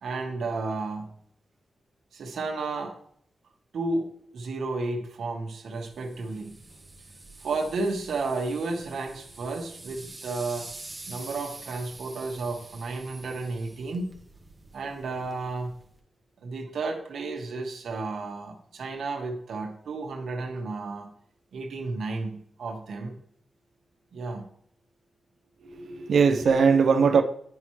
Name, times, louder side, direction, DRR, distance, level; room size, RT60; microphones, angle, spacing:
voice 1, 0.0-1.1 2.1-2.9 3.7-4.1 4.3-6.6 7.4-10.7 11.1-14.1 14.7-15.8 16.4-21.1 21.5-23.1 24.1-24.5, right 3 dB, 75° right, 1.1 m, -32 dB
sound 1, 5.7-16.0, right 2 dB, 20° right, 0.9 m, -46 dB
voice 2, 25.6-27.2, right 5 dB, 60° right, 0.4 m, -20 dB
9.6 x 5.6 x 3.1 m
wide cardioid pair, 180°, 0 cm